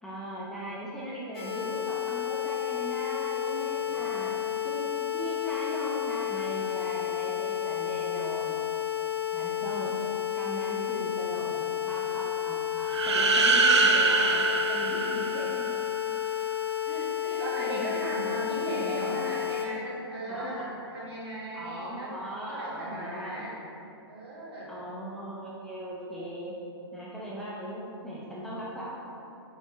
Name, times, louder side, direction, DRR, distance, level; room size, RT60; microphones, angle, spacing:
voice 1, 0.0-4.4 4.6-8.6 9.3-10.0 10.3-15.7 16.9-17.9 18.7-19.3 20.3-20.7 21.5-23.5 24.7-26.5 26.9-28.9, right 1 dB, 5° left, -7 dB, 0.6 m, -38 dB
sound 1, 1.3-19.6, left 11 dB, 70° left, 0.9 m, -31 dB
voice 2, 3.7-4.2 17.4-22.1 22.5-23.5 24.1-24.7, right 1 dB, 65° right, -5 dB, 1.4 m, -37 dB
sound 2, 12.9-15.8, right 3 dB, 85° right, 0.5 m, -24 dB
4.2 x 3.8 x 3.0 m, 2.7 s
hypercardioid pair, 130°, 14 cm